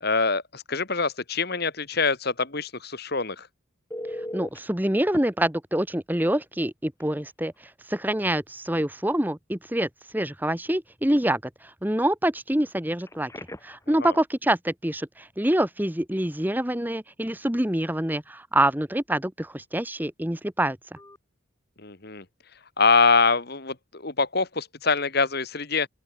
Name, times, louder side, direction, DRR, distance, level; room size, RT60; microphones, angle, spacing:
voice 1, 0.0-3.5 14.0-14.1 21.8-22.2 22.8-25.9, left 4 dB, 50° left, 2.0 m, -24 dB
Telephone, 3.9-4.6 5.1-5.2 7.0-7.1 7.5-7.7 13.0-13.9 21.0-21.2, left 1 dB, 15° left, 2.6 m, -37 dB
voice 2, 4.3-7.5 7.9-11.4 11.8-13.3 13.6-20.8, right 1 dB, 10° right, 1.2 m, -26 dB
open air
head